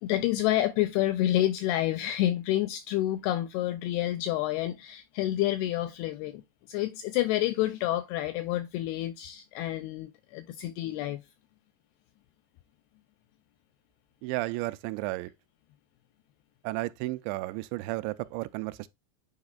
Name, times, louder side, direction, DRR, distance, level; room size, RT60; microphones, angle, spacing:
voice 1, 0.0-6.4 6.7-11.2, left 14 dB, 85° left, 2.3 m, -29 dB
voice 2, 14.2-15.3 16.6-18.9, right 20 dB, 90° right, 2.8 m, -33 dB
9.5 x 5.0 x 2.2 m
omnidirectional pair, 5.0 m